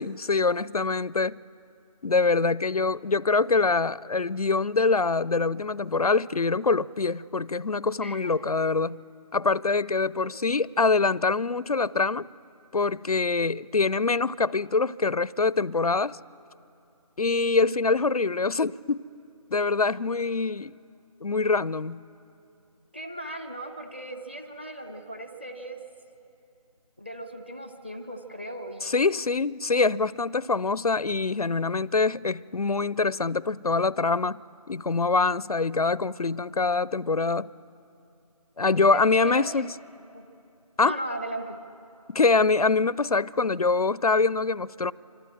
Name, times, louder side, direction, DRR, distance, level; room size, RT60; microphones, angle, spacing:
voice 1, 0.0-1.4 2.0-9.0 9.3-12.3 12.7-16.2 17.2-19.1 19.5-20.7 21.2-22.0 28.8-34.4 34.7-37.5 38.6-39.7 40.8-40.9 42.1-44.9, left 4 dB, 70° left, 0.5 m, -24 dB
voice 2, 8.0-8.3 10.2-10.3 22.9-25.8 27.0-29.0 38.9-39.7 40.1-40.3 40.8-41.6, right 1 dB, 15° right, 0.8 m, -37 dB
26.0 x 25.5 x 7.5 m
figure-of-eight pair, 170°, 20 cm